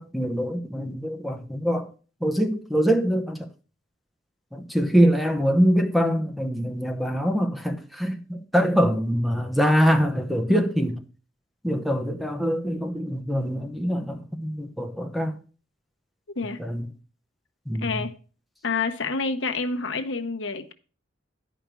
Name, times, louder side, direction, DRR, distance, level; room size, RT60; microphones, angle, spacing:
voice 1, 0.0-1.9 2.2-3.5 4.5-11.0 11.6-15.4 16.6-16.9 17.7-18.1, equal, ahead, 0.9 m, -24 dB
voice 2, 17.8-18.1 18.6-20.7, left 4 dB, 75° left, 1.0 m, -28 dB
10.5 x 5.1 x 6.1 m
head